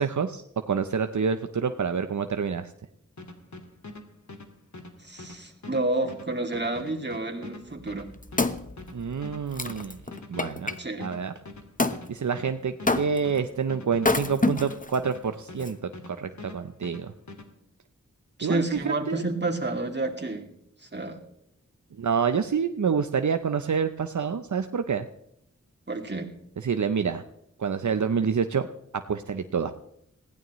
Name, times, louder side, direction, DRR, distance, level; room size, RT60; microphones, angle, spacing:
voice 1, 0.0-2.7 8.9-10.0 10.3-10.7 11.0-11.3 12.1-17.1 18.4-19.2 22.0-25.1 26.6-27.2 27.6-28.7 29.1-29.7, right 6 dB, 75° right, 8 dB, 0.7 m, -27 dB
sound 1, 3.2-16.1 16.4-17.5, left 2 dB, 70° left, 2.0 m, -43 dB
voice 2, 5.0-8.1 10.8-11.1 18.4-20.5 20.8-21.2 25.9-26.3, right 2 dB, 35° right, 1 dB, 2.6 m, -30 dB
Wood, 7.8-10.8 11.8-12.0 12.9-13.4 14.0-15.0 15.6-15.7, left 2 dB, 25° left, 1.0 m, -27 dB
20.5 x 16.0 x 3.1 m, 0.77 s
wide cardioid pair, 55°, 30 cm